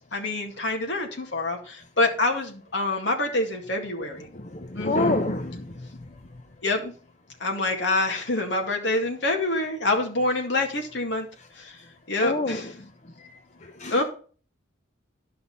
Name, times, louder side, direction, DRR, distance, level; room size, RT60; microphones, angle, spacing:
voice 1, 0.1-4.3 4.7-5.2 6.6-6.9 7.4-11.3 11.6-11.8 12.1-12.7 13.9-14.0, left 2 dB, 65° left, 2.1 m, -26 dB
voice 2, 4.3-5.7 12.2-12.6 13.8-14.0, left 2 dB, 35° left, 0.7 m, -27 dB
11.5 x 5.6 x 5.4 m
head